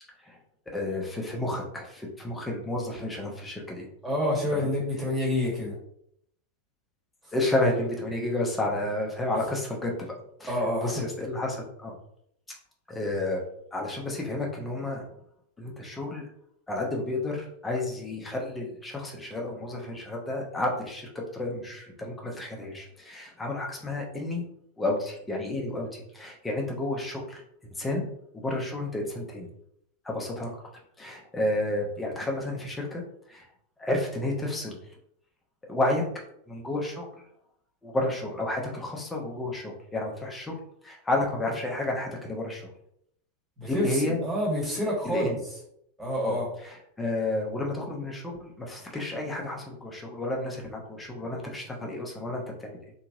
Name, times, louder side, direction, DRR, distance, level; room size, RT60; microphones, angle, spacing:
voice 1, 0.7-3.9 4.5-4.7 7.3-9.9 10.4-10.6 10.8-11.9 12.9-13.4 13.7-15.0 15.6-16.3 16.7-24.4 24.8-27.4 27.7-28.1 28.4-29.5 30.0-30.5 31.0-33.0 33.3-33.4 33.8-34.8 35.6-36.0 36.5-37.0 37.8-40.6 40.8-42.7 43.7-44.2 45.0-45.4 46.2-46.4 47.0-52.8, left 2 dB, 10° left, -1 dB, 0.7 m, -31 dB
voice 2, 4.0-5.8 10.5-11.0 43.6-45.3 46.0-46.5, left 1 dB, 10° right, -5 dB, 1.4 m, -28 dB
2.8 x 2.7 x 2.4 m, 0.72 s
figure-of-eight pair, 90°, 0 cm